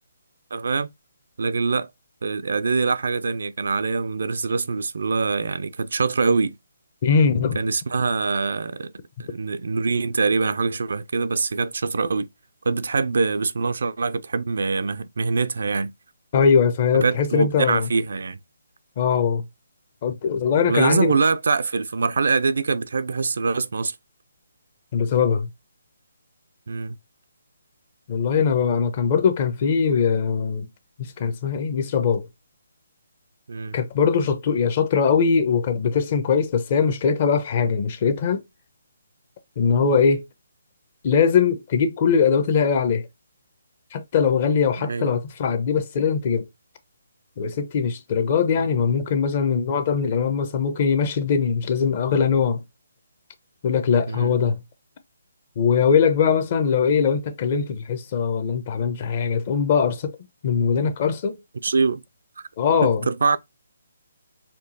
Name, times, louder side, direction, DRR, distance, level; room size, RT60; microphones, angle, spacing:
voice 1, 0.5-0.9 1.4-1.9 2.2-6.6 7.5-8.9 9.2-12.3 12.7-15.9 17.0-18.4 20.7-24.0 26.7-27.0 33.5-33.8 44.8-45.1 48.6-48.7 54.1-54.3 61.6-62.0 62.4-62.5 62.8-63.4, right 4 dB, 65° right, 0.4 m, -24 dB
voice 2, 7.0-7.6 16.3-17.9 19.0-19.4 20.0-21.2 24.9-25.5 28.1-30.7 31.0-32.3 33.7-38.4 39.6-40.2 41.0-43.1 43.9-46.5 47.4-52.6 53.6-54.6 55.6-60.1 60.4-61.4 62.6-63.1, left 6 dB, 40° left, 0.7 m, -21 dB
4.4 x 2.8 x 2.5 m
figure-of-eight pair, 150°, 0 cm